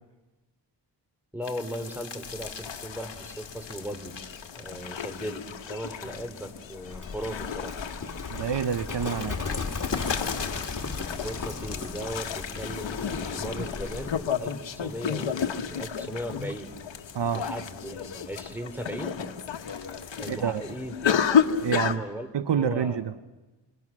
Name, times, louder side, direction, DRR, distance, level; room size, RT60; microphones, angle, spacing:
voice 1, 1.3-4.2 4.5-7.8 11.2-16.7 17.3-19.3 20.2-21.1 21.8-23.0, equal, 5° right, 3.9 m, -37 dB
sound 1, 1.4-7.3 7.8-13.7 14.0-14.5 15.0-18.3 18.7-20.3, left 6 dB, 65° left, 1.9 m, -41 dB
sound 2, 2.2-22.0, left 7 dB, 85° left, 1.3 m, -32 dB
Livestock farm animals working animals, 6.9-14.3, left 4 dB, 45° left, 2.6 m, -35 dB
voice 2, 8.3-9.4 17.1-17.4 20.3-20.6 21.6-22.0 22.3-23.1, right 7 dB, 70° right, 0.9 m, -27 dB
28.0 x 22.5 x 6.1 m
cardioid pair, 50°, 44 cm